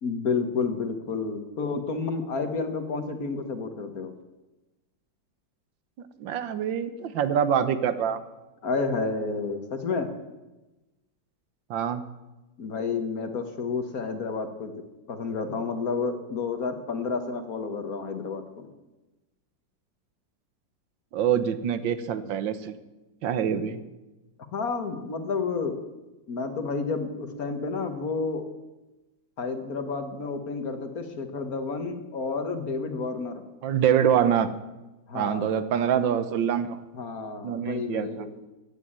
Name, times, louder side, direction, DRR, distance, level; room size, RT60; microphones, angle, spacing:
voice 1, 0.0-4.1 8.6-10.1 12.6-14.7 15.1-18.7 24.5-25.8 26.3-28.4 29.4-33.4 35.1-35.6 36.9-38.3, left 4 dB, 50° left, 8 dB, 1.7 m, -30 dB
voice 2, 6.2-8.2 11.7-12.0 21.1-22.8 23.2-23.8 33.6-34.5 35.1-36.8 37.4-38.1, right 8 dB, 80° right, 13 dB, 1.6 m, -25 dB
15.0 x 9.3 x 8.7 m, 1.1 s
omnidirectional pair, 2.0 m